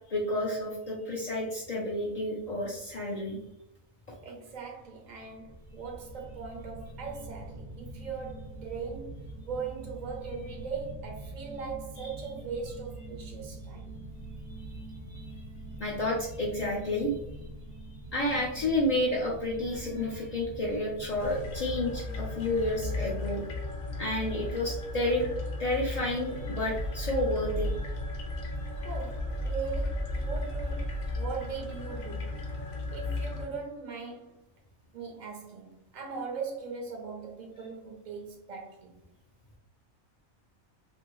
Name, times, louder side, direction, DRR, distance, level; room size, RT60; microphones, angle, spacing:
voice 1, 0.1-3.4 12.0-12.1 14.7-14.8 15.1-15.3 15.8-17.1 18.1-23.4 24.0-25.3 25.6-27.8, left 1 dB, 75° left, 0.3 m, -30 dB
voice 2, 4.2-13.9 28.8-32.4 32.9-34.4 34.9-38.9, right 5 dB, 60° right, 0.4 m, -40 dB
sound 1, 5.1-23.2, right 1 dB, 80° right, 1.0 m, -44 dB
sound 2, 21.2-33.4, left 1 dB, 55° left, 0.7 m, -35 dB
2.7 x 2.6 x 2.9 m
omnidirectional pair, 1.4 m